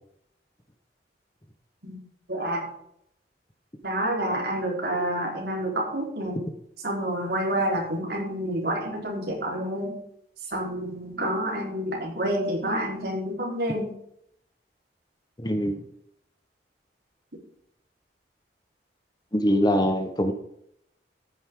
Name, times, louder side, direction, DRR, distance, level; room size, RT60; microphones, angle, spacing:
voice 1, 2.3-2.6 3.8-6.4 6.8-10.0 10.5-13.9, right 1 dB, 65° right, -2 dB, 4.2 m, -28 dB
voice 2, 15.4-15.8 19.3-20.3, equal, 25° left, 6 dB, 1.2 m, -23 dB
14.5 x 9.7 x 3.8 m, 0.74 s
head